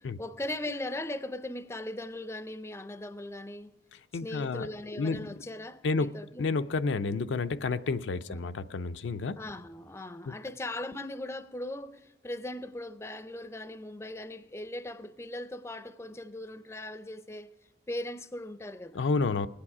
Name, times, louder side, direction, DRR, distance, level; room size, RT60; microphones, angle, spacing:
voice 1, 0.0-3.8 4.1-6.5 8.3-8.5 9.4-17.5 17.9-19.0, left 1 dB, 15° left, 0.4 m, -39 dB
voice 2, 4.1-4.7 4.9-5.3 5.8-6.1 6.4-9.4 10.3-10.4 18.9-19.5, left 4 dB, 85° left, 0.5 m, -30 dB
20.5 x 8.7 x 4.8 m
head